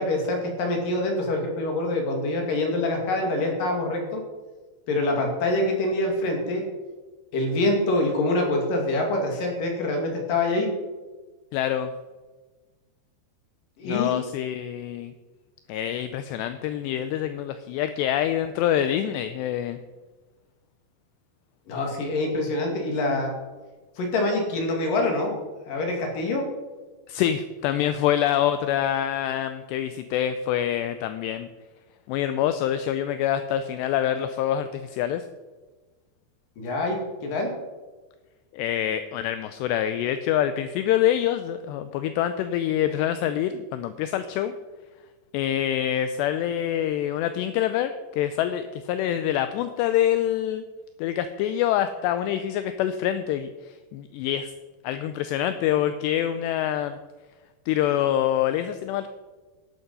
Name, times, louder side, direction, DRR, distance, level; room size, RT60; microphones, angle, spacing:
voice 1, 0.0-4.2 4.9-6.6 7.3-10.7 13.8-14.2 21.7-23.3 24.0-25.3 25.7-26.4 36.6-37.5, left 2 dB, 55° left, 2 dB, 3.6 m, -25 dB
voice 2, 11.5-11.9 13.8-15.1 15.7-19.8 27.1-31.5 32.1-35.2 38.5-44.5 45.3-50.6 51.0-53.5 53.9-54.5 54.8-57.0 57.7-59.1, left 11 dB, 80° left, 10 dB, 2.6 m, -26 dB
12.5 x 11.5 x 5.5 m, 1.3 s
omnidirectional pair, 5.3 m